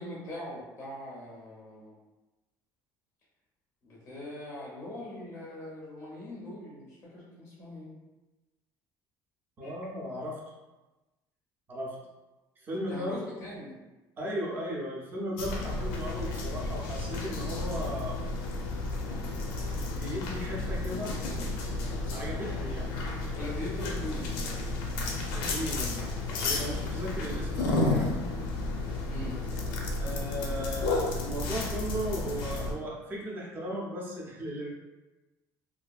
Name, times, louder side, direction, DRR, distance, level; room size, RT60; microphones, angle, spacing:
voice 1, 0.0-1.9 3.8-7.9 9.6-9.7 12.7-13.7 23.3-24.7 29.1-29.7, left 1 dB, 20° left, -5 dB, 0.5 m, -41 dB
voice 2, 9.6-10.4 11.7-12.0 12.6-13.2 14.2-18.2 19.9-21.4 22.1-23.0 25.3-26.0 26.4-28.2 30.0-34.7, equal, 25° right, -3 dB, 0.5 m, -36 dB
sound 1, 15.4-32.7, left 2 dB, 85° left, 0.5 m, -32 dB
2.7 x 2.4 x 2.3 m, 1.1 s
cardioid pair, 160°, 8 cm